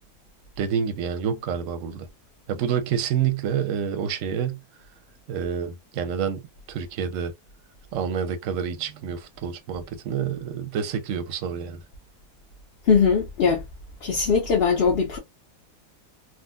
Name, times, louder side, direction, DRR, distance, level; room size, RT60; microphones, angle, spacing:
voice 1, 0.6-2.1 2.5-4.6 5.3-6.4 6.7-7.3 7.9-11.8, right 7 dB, 60° right, 0.9 m, -28 dB
voice 2, 12.9-13.6 14.0-15.2, left 5 dB, 45° left, 0.9 m, -20 dB
3.7 x 2.4 x 2.3 m
omnidirectional pair, 1.7 m